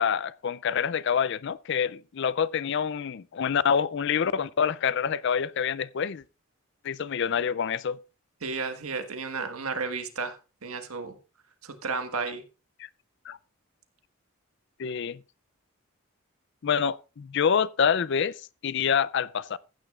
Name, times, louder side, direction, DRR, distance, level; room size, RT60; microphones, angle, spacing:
voice 1, 0.0-6.2 6.8-8.0 12.8-12.9 13.3-13.4 14.8-15.2 16.6-19.6, left 7 dB, 55° left, 0.4 m, -27 dB
voice 2, 8.4-11.2 11.6-12.4, right 4 dB, 85° right, 1.6 m, -33 dB
15.0 x 9.6 x 2.4 m
head